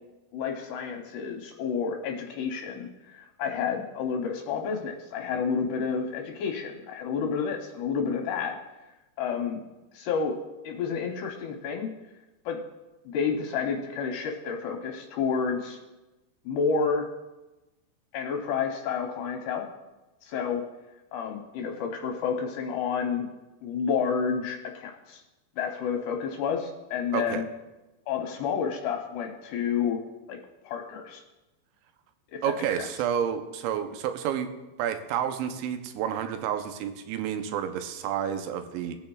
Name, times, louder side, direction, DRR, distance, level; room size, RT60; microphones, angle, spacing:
voice 1, 0.3-8.6 9.2-9.6 9.9-10.4 10.6-11.9 12.5-12.6 13.1-15.8 16.5-17.1 18.1-19.6 20.2-20.6 21.1-23.3 23.6-25.2 25.6-27.4 28.1-30.0 30.3-30.4 30.6-31.2 32.3-32.4, left 6 dB, 75° left, 2 dB, 2.7 m, -30 dB
voice 2, 27.1-27.4 32.4-34.5 34.8-39.0, right 9 dB, 80° right, 7 dB, 3.1 m, -30 dB
20.0 x 9.1 x 2.4 m, 1.1 s
omnidirectional pair, 5.3 m